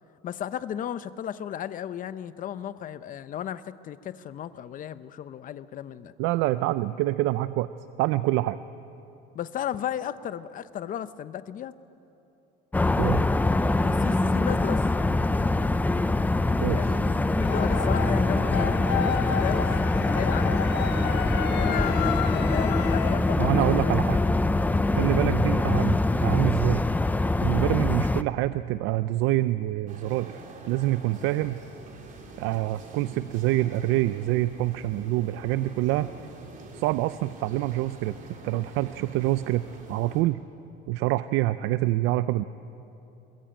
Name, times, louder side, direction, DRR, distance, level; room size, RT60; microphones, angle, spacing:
voice 1, 0.2-6.1 9.3-11.7 13.8-14.8 16.7-20.9 21.5-24.4, left 10 dB, 40° left, 14 dB, 0.8 m, -35 dB
voice 2, 6.2-7.7 8.0-8.6 13.0-13.3 16.6-16.8 23.4-24.2 25.0-26.8 27.4-31.6 32.4-36.1 36.7-38.1 38.4-39.6 39.9-40.4 40.9-42.4, right 16 dB, 80° right, 14 dB, 0.5 m, -26 dB
sound 1, 12.7-28.2, left 2 dB, 10° left, 0.5 m, -24 dB
sound 2, 17.4-23.4, left 9 dB, 60° left, 1.3 m, -32 dB
sound 3, 29.9-40.2, right 3 dB, 40° right, 3.6 m, -45 dB
22.0 x 22.0 x 9.0 m, 3.0 s
cardioid pair, 145°, 21 cm